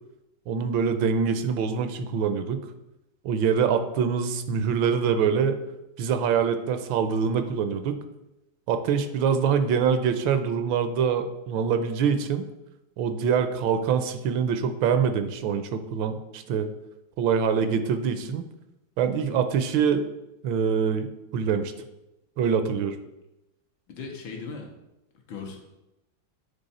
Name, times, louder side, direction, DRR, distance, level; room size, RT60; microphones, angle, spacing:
voice 1, 0.5-2.7 3.2-5.6 6.0-8.0 8.7-12.4 13.0-16.7 17.2-18.4 19.0-20.0 20.4-21.7 22.4-23.0, right 6 dB, 80° right, 8 dB, 1.3 m, -24 dB
voice 2, 23.9-24.7 25.3-25.6, left 4 dB, 80° left, 2 dB, 1.8 m, -37 dB
9.0 x 3.5 x 4.1 m, 0.93 s
omnidirectional pair, 2.1 m